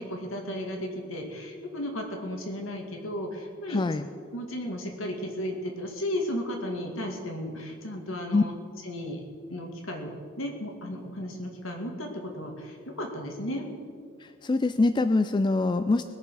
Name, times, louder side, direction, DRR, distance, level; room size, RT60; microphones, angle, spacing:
voice 1, 0.0-3.9 4.3-8.5 8.8-9.2 9.5-13.6, left 1 dB, 70° left, 2 dB, 2.2 m, -34 dB
voice 2, 3.7-4.1 8.3-8.4 14.2-16.0, left 3 dB, 20° left, 10 dB, 0.3 m, -24 dB
20.5 x 6.9 x 6.3 m, 2.2 s
head